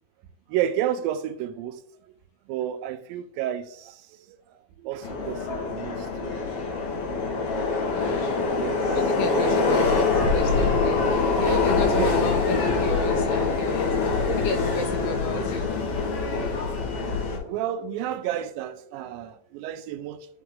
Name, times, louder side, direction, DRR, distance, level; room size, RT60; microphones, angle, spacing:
voice 1, 0.5-1.8 2.5-4.0 4.3-4.4 4.8-6.4 8.5-9.1 9.3-9.8 11.4-11.6 12.0-12.2 15.1-15.2 16.7-16.8 17.4-20.3, right 11 dB, 85° right, 2.3 m, -31 dB
Subway metro underground, 5.0-17.4, left 4 dB, 55° left, 1.8 m, -24 dB
voice 2, 7.9-8.5 8.9-14.0 14.2-15.7, left 3 dB, 75° left, 2.1 m, -33 dB
10.5 x 3.7 x 3.7 m
omnidirectional pair, 4.1 m